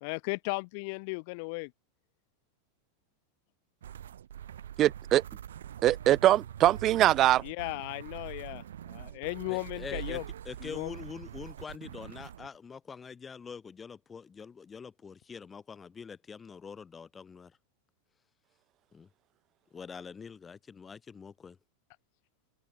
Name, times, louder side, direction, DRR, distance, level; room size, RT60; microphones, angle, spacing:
voice 1, 0.0-1.7 7.4-10.2 10.6-11.0, left 31 dB, 60° left, 1.2 m, -36 dB
sound 1, 3.8-12.5, right 10 dB, 85° right, 4.9 m, -44 dB
voice 2, 4.8-5.2 5.8-7.4, right 13 dB, 40° right, 0.7 m, -22 dB
voice 3, 9.5-10.2 10.4-17.6 18.9-19.1 19.7-21.6, left 6 dB, 20° left, 4.1 m, -45 dB
open air
hypercardioid pair, 115°, 0 cm